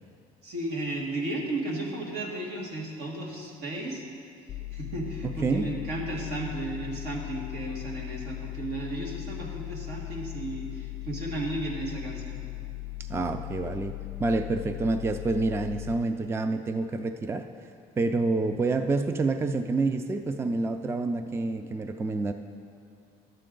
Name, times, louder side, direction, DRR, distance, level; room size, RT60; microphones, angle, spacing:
voice 1, 0.4-4.1 4.7-12.4, right 1 dB, 75° right, -1 dB, 1.7 m, -34 dB
sound 1, 4.5-15.9, left 21 dB, 50° left, 0.5 m, -38 dB
voice 2, 5.2-5.7 13.1-13.9 14.2-17.5 18.0-22.3, right 3 dB, 15° right, 8 dB, 0.3 m, -28 dB
11.5 x 7.6 x 3.8 m, 2.3 s
cardioid pair, 110°, 17 cm